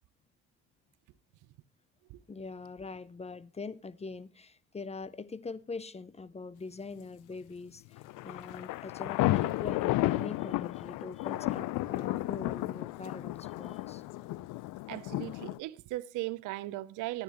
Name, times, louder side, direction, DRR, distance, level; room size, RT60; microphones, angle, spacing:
voice 1, 2.3-14.0, left 4 dB, 20° left, 0.7 m, -43 dB
sound 1, 8.0-15.6, left 17 dB, 65° left, 0.7 m, -33 dB
voice 2, 14.9-17.2, right 18 dB, 65° right, 0.7 m, -38 dB
16.0 x 9.9 x 3.1 m
supercardioid pair, 75°, 33 cm